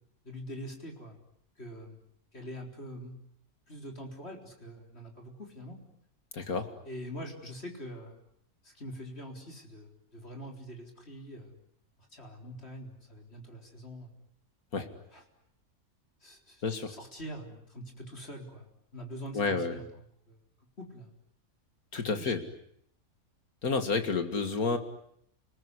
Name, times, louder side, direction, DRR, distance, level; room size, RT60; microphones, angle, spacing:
voice 1, 0.2-1.2 1.6-2.0 2.3-3.2 3.7-5.8 6.8-8.2 8.6-11.6 12.1-14.1 14.7-15.2 16.2-19.9 20.3-20.4 20.8-21.1 21.9-22.3, equal, 45° left, 2 dB, 4.4 m, -44 dB
voice 2, 6.3-6.7 14.7-14.9 16.6-16.9 19.3-19.8 21.9-22.4 23.6-24.8, left 4 dB, 85° left, 8 dB, 2.6 m, -30 dB
29.5 x 20.5 x 9.8 m, 0.71 s
omnidirectional pair, 1.5 m